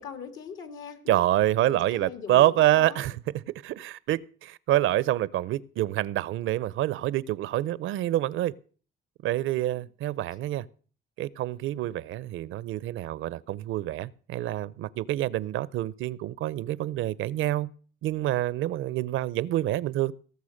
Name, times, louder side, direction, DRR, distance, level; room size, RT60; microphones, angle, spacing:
voice 1, 0.0-1.2 1.6-3.0 9.2-9.4 9.7-9.8, left 7 dB, 75° left, 2.4 m, -41 dB
voice 2, 1.1-8.5 9.2-10.7 11.2-17.7 18.0-20.1, right 14 dB, 80° right, 0.6 m, -27 dB
17.5 x 6.9 x 6.4 m
cardioid pair, 90°, 20 cm